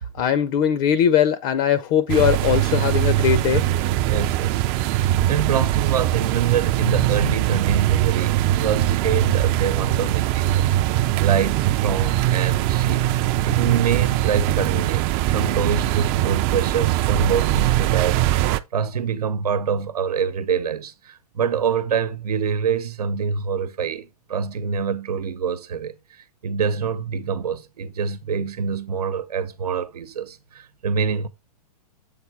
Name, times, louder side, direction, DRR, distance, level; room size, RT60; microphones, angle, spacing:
voice 1, 0.1-3.6, left 9 dB, 35° left, 0.5 m, -20 dB
sound 1, 2.1-18.6, right 14 dB, 30° right, 0.4 m, -21 dB
voice 2, 4.1-4.7 5.3-10.7 11.2-13.1 13.4-31.3, right 6 dB, 90° right, 1.0 m, -25 dB
7.4 x 3.8 x 4.6 m
hypercardioid pair, 145°, 19 cm